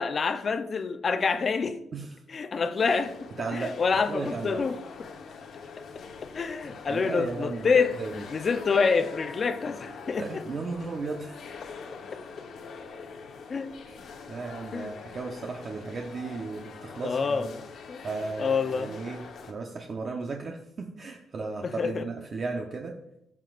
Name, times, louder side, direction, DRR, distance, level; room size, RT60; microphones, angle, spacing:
voice 1, 0.0-1.8 2.3-3.1 3.5-4.8 6.3-10.4 13.5-13.7 14.7-14.9 17.0-17.6 17.9-18.0 18.4-19.0 21.6-22.0, left 5 dB, 45° left, 0.7 m, -27 dB
sound 1, 2.8-19.5, left 5 dB, 65° left, 1.1 m, -44 dB
voice 2, 3.4-3.7 4.1-4.6 6.6-8.2 10.2-11.4 14.3-17.5 18.0-19.2 19.5-22.9, right 4 dB, 45° right, 0.9 m, -35 dB
13.5 x 6.0 x 2.5 m
cardioid pair, 90°, 0 cm